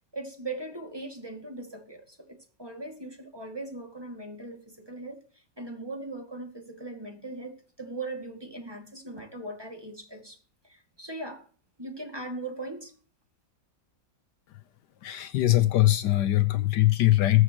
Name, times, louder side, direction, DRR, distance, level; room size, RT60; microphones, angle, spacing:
voice 1, 0.1-10.4 10.6-11.5 11.8-12.9, right 2 dB, 15° right, 2.1 m, -39 dB
voice 2, 15.0-17.4, left 15 dB, 75° left, 1.2 m, -22 dB
21.0 x 7.8 x 3.0 m
omnidirectional pair, 1.9 m